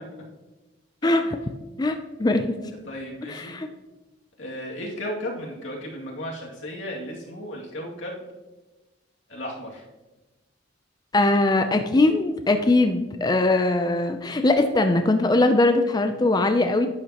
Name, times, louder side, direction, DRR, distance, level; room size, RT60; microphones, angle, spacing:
voice 1, 1.8-2.5 3.3-3.7 11.1-16.9, left 2 dB, 20° left, 7 dB, 0.4 m, -21 dB
voice 2, 2.9-3.5 4.4-8.2 9.3-9.8, equal, 90° left, -2 dB, 2.3 m, -34 dB
11.5 x 8.6 x 2.9 m, 1.1 s
head